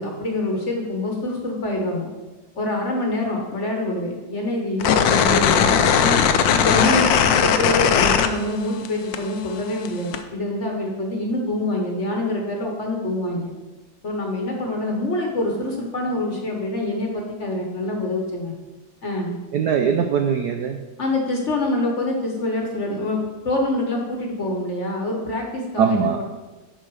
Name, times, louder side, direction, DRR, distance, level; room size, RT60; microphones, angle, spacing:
voice 1, 0.0-2.1 2.6-6.2 6.5-13.5 14.0-18.5 19.0-19.3 21.0-23.2 23.4-26.2, left 1 dB, 40° left, 1 dB, 1.2 m, -25 dB
sound 1, 4.8-8.9 9.1-10.2, left 7 dB, 75° left, 1.2 m, -18 dB
voice 2, 19.5-20.8 25.8-26.2, right 7 dB, 80° right, 5 dB, 0.9 m, -21 dB
11.0 x 4.1 x 4.8 m, 1.2 s
omnidirectional pair, 2.2 m